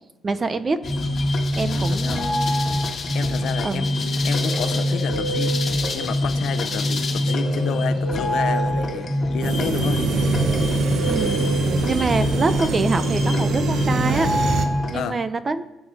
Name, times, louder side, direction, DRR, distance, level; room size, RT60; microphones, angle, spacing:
voice 1, 0.2-0.8 1.5-2.5 3.6-3.9 11.1-11.4 11.8-14.3 14.9-15.6, right 3 dB, 20° right, 12 dB, 0.6 m, -25 dB
sound 1, 0.8-15.0, left 1 dB, 30° left, 1.7 m, -24 dB
voice 2, 1.7-2.3 3.1-5.6 5.9-10.0 14.9-15.2, left 9 dB, 60° left, 10 dB, 0.8 m, -31 dB
sound 2, 4.0-12.7, right 3 dB, 90° right, 2.4 m, -33 dB
sound 3, 9.4-14.7, right 5 dB, 60° right, 1.2 m, -25 dB
23.0 x 8.4 x 4.8 m, 1.0 s
cardioid pair, 180°, 0 cm